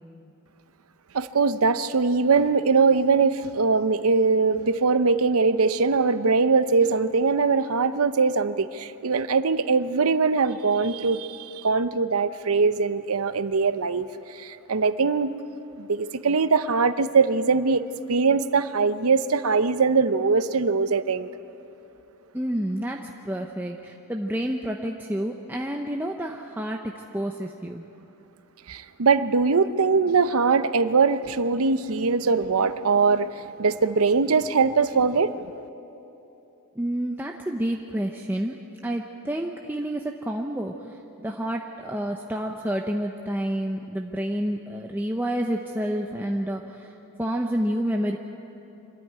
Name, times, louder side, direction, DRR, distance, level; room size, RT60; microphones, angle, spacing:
voice 1, 1.1-15.3 15.8-21.3 28.7-35.3, right 4 dB, 80° right, 0.7 m, -22 dB
voice 2, 22.3-27.8 36.8-38.5 38.8-48.2, right 1 dB, 10° right, 0.7 m, -29 dB
25.0 x 13.5 x 9.5 m
head